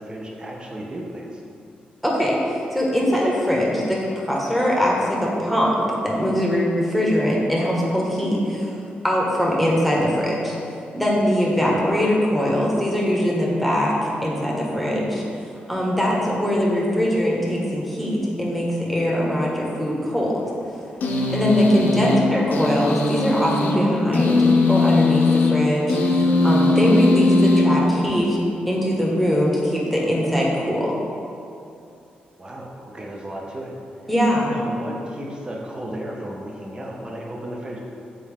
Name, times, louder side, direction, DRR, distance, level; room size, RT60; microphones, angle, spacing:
voice 1, 0.0-1.4 11.6-11.9 21.5-22.0 32.4-34.1 34.4-37.8, right 1 dB, 25° right, -2 dB, 0.9 m, -34 dB
voice 2, 2.0-8.7 9.0-10.5 10.9-15.2 15.7-20.4 21.3-28.4 28.7-31.0 34.1-34.5, equal, ahead, -4 dB, 1.4 m, -22 dB
sound 1, 21.0-28.4, left 2 dB, 65° left, 0.7 m, -20 dB
7.0 x 4.3 x 3.6 m, 2.6 s
cardioid pair, 70°, 3 cm